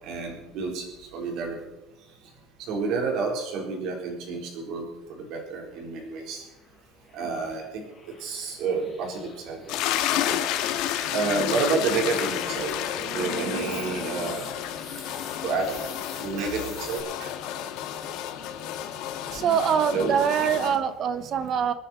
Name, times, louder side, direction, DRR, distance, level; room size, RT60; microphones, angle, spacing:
voice 1, 0.0-1.6 2.7-6.4 7.1-7.8 8.2-10.4 11.1-14.5 15.4-15.7 16.2-17.3 19.4-20.8, right 4 dB, 55° right, 1 dB, 4.2 m, -30 dB
sound 1, 5.4-17.0, left 4 dB, 10° left, 5.6 m, -48 dB
sound 2, 9.7-20.8, left 11 dB, 60° left, 1.6 m, -31 dB
voice 2, 19.3-21.7, right 7 dB, 35° right, 13 dB, 0.9 m, -24 dB
26.0 x 9.7 x 4.4 m, 1.0 s
cardioid pair, 170°, 0 cm